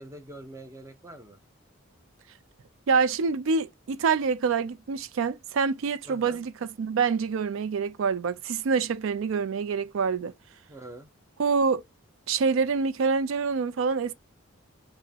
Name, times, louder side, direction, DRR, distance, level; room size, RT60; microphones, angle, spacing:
voice 1, 0.0-1.4 6.0-6.4 10.7-11.1, right 1 dB, 15° right, 0.5 m, -44 dB
voice 2, 2.9-10.3 11.4-11.8 12.3-14.1, right 5 dB, 70° right, 0.4 m, -26 dB
5.2 x 2.1 x 2.7 m
head